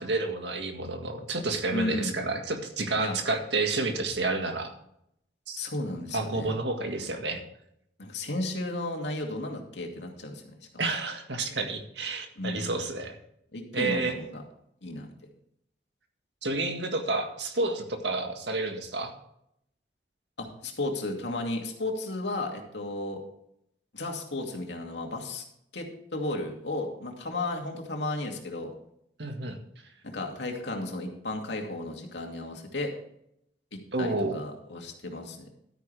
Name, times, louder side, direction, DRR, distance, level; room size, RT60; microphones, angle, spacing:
voice 1, 0.0-4.7 5.5-5.6 6.1-7.4 10.8-13.2 13.7-14.1 16.4-19.1 29.2-29.6 33.9-34.4, right 3 dB, 85° right, 4 dB, 1.8 m, -30 dB
voice 2, 1.7-2.2 3.0-3.2 5.6-6.5 8.0-10.5 12.4-12.8 13.5-14.4 14.8-15.1 20.4-23.2 23.9-25.4 25.7-25.9 26.1-28.7 30.0-32.9 33.7-35.5, left 2 dB, 90° left, 2 dB, 2.5 m, -34 dB
12.5 x 9.7 x 3.4 m, 0.74 s
head